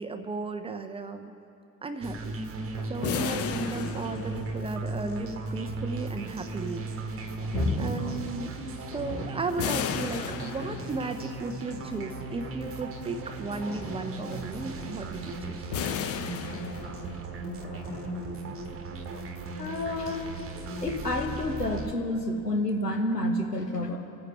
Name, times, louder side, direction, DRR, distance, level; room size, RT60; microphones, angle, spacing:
voice 1, 0.0-1.3 1.8-2.4 2.9-7.3 7.8-8.5 8.9-15.6, right 3 dB, 15° right, 8 dB, 0.4 m, -35 dB
sound 1, 2.0-21.9, right 3 dB, 30° right, 1.1 m, -37 dB
sound 2, 2.7-20.9, left 2 dB, 50° left, 3.5 m, -41 dB
sound 3, 3.0-4.9 9.6-11.2 15.7-17.4, left 8 dB, 30° left, 0.7 m, -34 dB
voice 2, 19.6-20.3 20.8-24.0, left 1 dB, 90° left, 3 dB, 1.1 m, -29 dB
25.0 x 9.6 x 3.3 m, 2.8 s
figure-of-eight pair, 65°, 47 cm